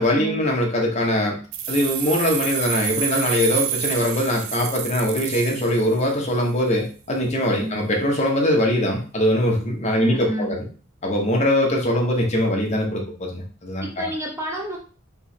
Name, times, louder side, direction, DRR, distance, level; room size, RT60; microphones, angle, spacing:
voice 1, 0.0-1.4 1.7-10.7 11.0-14.1, left 1 dB, 35° left, 0 dB, 1.1 m, -22 dB
sound 1, 1.5-6.3, right 11 dB, 80° right, 0.5 m, -29 dB
voice 2, 10.0-10.6 13.8-14.8, right 1 dB, 15° right, -1 dB, 0.7 m, -29 dB
3.5 x 3.1 x 4.4 m, 0.39 s
head